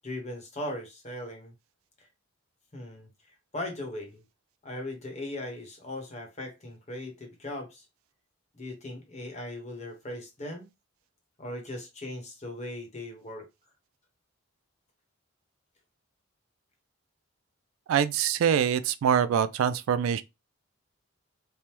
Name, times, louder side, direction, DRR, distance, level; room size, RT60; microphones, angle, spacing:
voice 1, 0.0-1.5 2.0-2.1 2.7-4.2 4.6-7.9 8.5-10.7 11.4-13.5, left 1 dB, 35° left, 0.9 m, -39 dB
voice 2, 17.9-20.2, right 8 dB, 80° right, 0.3 m, -24 dB
3.3 x 2.0 x 2.9 m
head